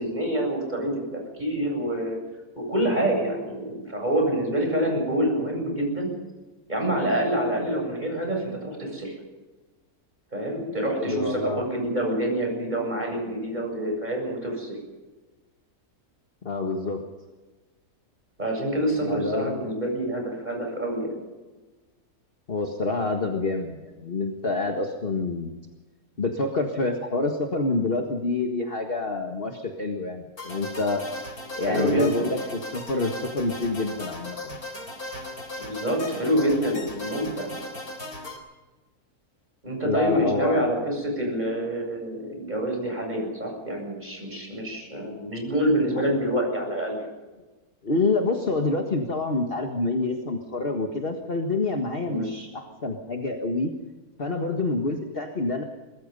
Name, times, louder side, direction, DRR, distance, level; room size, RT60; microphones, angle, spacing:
voice 1, 0.0-2.2 2.6-6.1 6.7-9.2 10.3-14.7 18.4-21.2 31.6-32.3 35.6-37.5 39.6-47.0 52.1-52.3, right 1 dB, 30° right, 1 dB, 8.0 m, -27 dB
voice 2, 10.9-11.7 16.4-17.0 19.0-19.8 22.5-25.5 26.2-31.0 31.5-34.6 39.8-40.7 47.8-53.7 54.2-55.6, left 3 dB, 40° left, 3 dB, 1.8 m, -27 dB
sound 1, 30.4-38.4, left 1 dB, 75° left, 4.3 m, -37 dB
24.0 x 20.5 x 5.5 m, 1.2 s
omnidirectional pair, 1.6 m